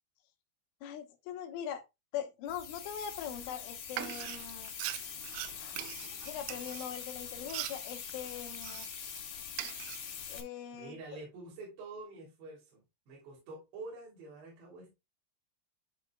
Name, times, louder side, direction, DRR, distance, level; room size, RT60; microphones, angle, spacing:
voice 1, 0.8-1.9 2.1-4.7 5.6-5.8 6.3-8.9 10.3-10.9, left 9 dB, 80° left, 3.4 m, -41 dB
sound 1, 2.5-10.4, left 8 dB, 60° left, 3.0 m, -44 dB
Frying (food), 3.9-9.2 9.5-10.4, right 17 dB, 85° right, 2.8 m, -42 dB
voice 2, 10.7-14.9, right 3 dB, 60° right, 5.0 m, -47 dB
12.5 x 4.9 x 2.3 m
omnidirectional pair, 5.7 m